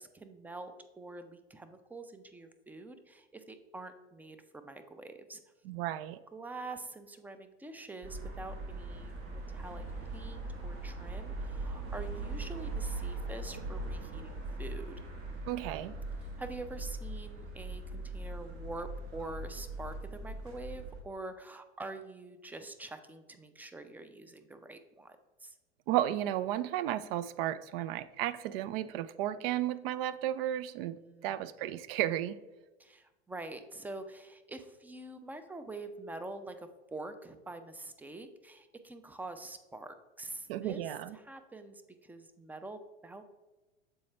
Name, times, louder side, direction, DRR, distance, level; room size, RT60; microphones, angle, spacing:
voice 1, 0.0-5.4 6.3-15.0 16.4-25.6 30.9-31.4 32.8-40.8 41.1-43.2, right 2 dB, 5° right, 9 dB, 0.4 m, -45 dB
voice 2, 5.6-6.2 15.5-15.9 25.9-32.4 40.5-41.2, right 12 dB, 60° right, 15 dB, 0.5 m, -33 dB
sound 1, 8.0-21.0, right 2 dB, 45° right, 1.6 m, -40 dB
7.0 x 4.3 x 3.2 m, 1.1 s
hypercardioid pair, 90°, 33 cm